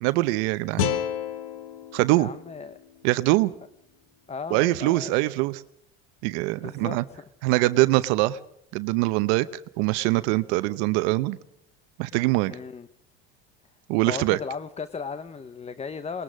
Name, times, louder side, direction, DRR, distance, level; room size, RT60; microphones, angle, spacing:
voice 1, 0.0-0.9 1.9-2.3 3.0-3.5 4.5-5.6 6.2-7.0 7.4-8.4 8.7-9.5 9.8-11.4 12.0-12.5 13.9-14.4, right 19 dB, 80° right, 0.8 m, -23 dB
sound 1, 0.8-3.9, left 9 dB, 85° left, 1.6 m, -32 dB
voice 2, 2.1-2.8 4.3-5.1 6.5-7.2 12.5-12.9 14.1-16.2, left 5 dB, 20° left, 0.8 m, -36 dB
21.0 x 20.0 x 6.3 m
supercardioid pair, 100°, 32 cm